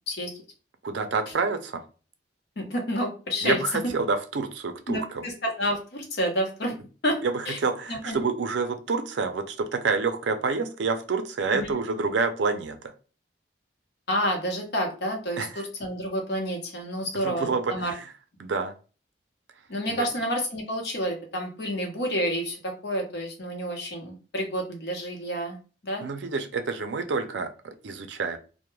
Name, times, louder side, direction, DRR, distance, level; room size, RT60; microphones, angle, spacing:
voice 1, 0.8-1.8 3.4-5.3 7.2-12.9 15.4-15.5 17.1-18.0 18.4-18.7 19.9-20.1 26.0-28.4, right 4 dB, 70° right, 8 dB, 0.4 m, -28 dB
voice 2, 2.6-3.6 4.9-6.7 7.0-7.2 7.5-7.6 7.9-8.2 11.5-11.7 14.1-17.9 19.7-25.6 25.8-26.1, equal, 60° left, 2 dB, 0.8 m, -29 dB
2.2 x 2.1 x 3.0 m, 0.36 s
head